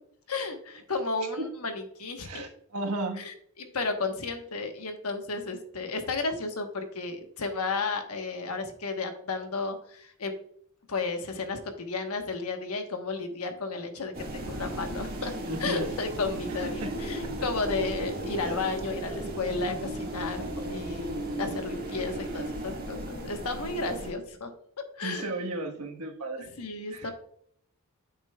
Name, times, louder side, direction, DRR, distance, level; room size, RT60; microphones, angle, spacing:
voice 1, 0.3-2.4 3.2-10.3 10.9-20.4 20.7-24.5 25.0-25.4 26.6-27.1, left 3 dB, 75° left, 6 dB, 1.1 m, -33 dB
voice 2, 2.2-3.2 15.5-16.0 16.6-17.0 18.4-18.6 25.0-26.5 26.9-27.1, right 2 dB, 85° right, 3 dB, 1.3 m, -34 dB
sound 1, 14.1-24.1, right 1 dB, 40° right, 1.7 m, -35 dB
8.9 x 7.0 x 2.3 m, 0.67 s
head